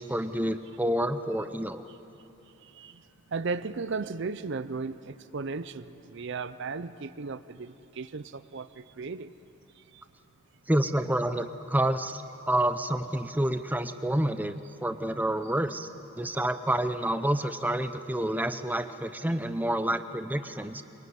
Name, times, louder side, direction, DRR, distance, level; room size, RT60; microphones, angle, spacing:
voice 1, 0.0-1.8 10.7-15.9 16.2-20.8, right 1 dB, 10° right, 10 dB, 0.6 m, -28 dB
voice 2, 2.6-3.0 3.3-9.3 9.9-10.0, right 4 dB, 55° right, 14 dB, 0.6 m, -36 dB
23.0 x 21.5 x 9.5 m, 2.9 s
head